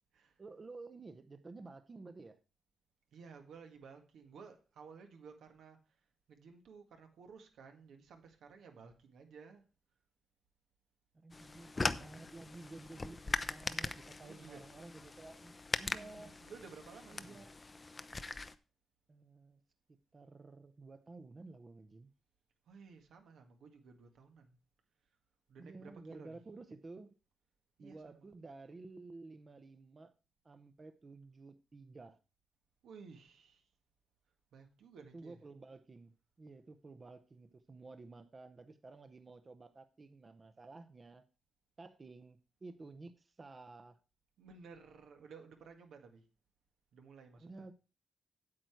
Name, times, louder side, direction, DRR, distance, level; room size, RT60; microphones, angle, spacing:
voice 1, 0.4-2.4 11.2-16.4 17.1-17.5 19.1-19.6 19.9-22.1 25.6-27.2 27.8-30.1 30.4-32.2 35.1-41.2 41.8-44.0 47.4-47.7, right 3 dB, 30° right, 0.7 m, -52 dB
voice 2, 3.1-6.0 6.3-9.7 14.2-14.7 16.0-17.4 22.7-24.6 25.5-26.4 27.8-28.3 32.8-33.7 34.5-35.4 44.4-46.3 46.9-47.5, right 5 dB, 85° right, 1.8 m, -55 dB
sound 1, 11.3-18.6, left 3 dB, 25° left, 0.6 m, -41 dB
8.7 x 7.9 x 4.6 m
cardioid pair, 110°, 0 cm